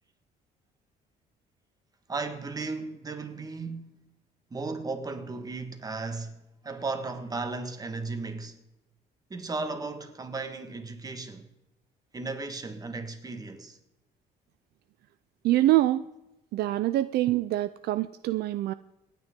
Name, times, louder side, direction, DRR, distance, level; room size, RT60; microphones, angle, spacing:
voice 1, 2.1-4.0 4.5-8.6 9.3-11.5 12.1-13.8, right 3 dB, 20° right, 1.6 m, -35 dB
voice 2, 15.4-16.0 16.5-18.7, right 15 dB, 70° right, 0.4 m, -25 dB
26.5 x 9.0 x 3.7 m
cardioid pair, 110°, 17 cm